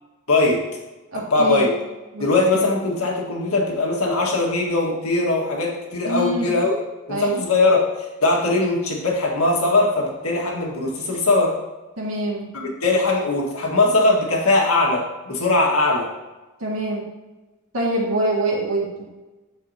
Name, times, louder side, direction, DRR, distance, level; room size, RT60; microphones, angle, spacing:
voice 1, 0.3-0.6 1.3-1.7 2.2-6.8 7.1-7.9 8.2-11.6 12.5-16.1, left 2 dB, 75° left, -1 dB, 1.7 m, -20 dB
voice 2, 1.1-1.7 2.1-2.2 6.0-6.5 7.1-7.4 12.0-12.5 16.6-17.0 17.7-19.0, right 1 dB, 70° right, -3 dB, 2.1 m, -24 dB
9.3 x 6.5 x 2.8 m, 1.1 s
head